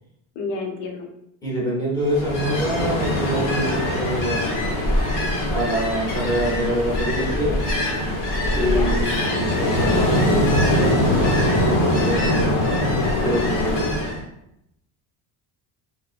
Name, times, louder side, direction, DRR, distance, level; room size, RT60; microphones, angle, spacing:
voice 1, 0.3-1.1 8.6-9.0, left 3 dB, 85° left, 1 dB, 0.7 m, -29 dB
voice 2, 1.4-4.7 5.5-7.6 8.5-12.7 13.2-13.9, right 1 dB, 10° left, -6 dB, 0.8 m, -26 dB
Ocean, 2.0-14.2, left 1 dB, 40° left, 0.8 m, -22 dB
2.7 x 2.3 x 2.3 m, 0.78 s
cardioid pair, 130°, 47 cm